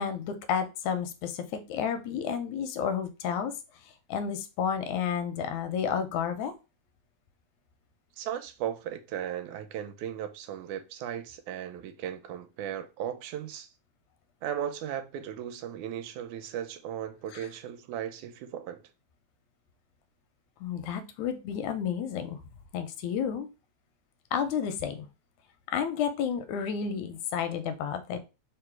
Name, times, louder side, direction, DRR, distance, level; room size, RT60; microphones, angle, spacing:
voice 1, 0.0-3.5 4.1-6.5 20.6-22.4 22.7-23.5 24.3-25.1 25.7-28.2, left 7 dB, 85° left, 1.9 m, -31 dB
voice 2, 8.2-13.7 14.4-18.8, right 10 dB, 85° right, 2.0 m, -36 dB
4.8 x 2.0 x 4.4 m
omnidirectional pair, 3.4 m